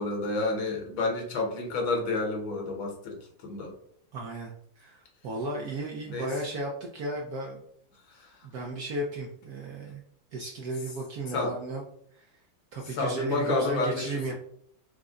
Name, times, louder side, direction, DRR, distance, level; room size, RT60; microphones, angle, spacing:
voice 1, 0.0-3.1 3.4-3.7 6.1-6.3 11.3-11.5 12.9-14.3, left 3 dB, 70° left, 1 dB, 1.7 m, -29 dB
voice 2, 4.1-7.6 8.4-10.0 10.3-11.8 12.1-12.3 12.7-14.3, right 2 dB, 70° right, -1 dB, 0.9 m, -34 dB
4.8 x 2.2 x 3.7 m, 0.65 s
omnidirectional pair, 2.2 m